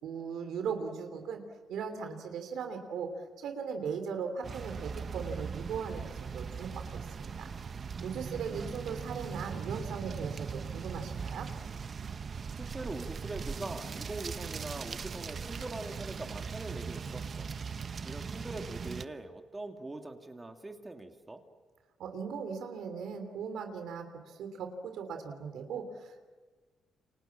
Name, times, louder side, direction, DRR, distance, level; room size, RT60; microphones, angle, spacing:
voice 1, 0.0-1.4 1.7-3.1 3.4-7.5 8.0-11.5 22.0-26.2, right 6 dB, 75° right, 6 dB, 3.1 m, -38 dB
sound 1, 4.4-19.1, right 6 dB, 45° right, 0.9 m, -39 dB
voice 2, 12.6-17.5 18.0-21.4, right 2 dB, 20° right, 5 dB, 2.4 m, -42 dB
28.5 x 25.0 x 7.5 m, 1.4 s
cardioid pair, 90°, 0 cm